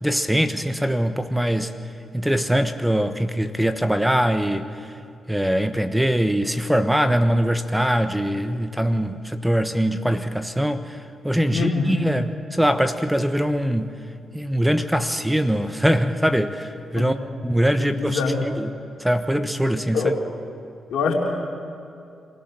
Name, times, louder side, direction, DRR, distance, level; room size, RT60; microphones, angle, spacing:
voice 1, 0.0-1.7 2.1-4.9 5.3-13.9 14.3-17.1 17.4-18.7 19.0-20.2, equal, 5° right, 9 dB, 1.2 m, -22 dB
voice 2, 11.5-11.8 16.9-17.1 17.8-18.4 19.9-20.2 20.9-21.1, left 5 dB, 80° left, -1 dB, 3.5 m, -24 dB
26.5 x 16.5 x 6.5 m, 2.4 s
supercardioid pair, 50°, 0 cm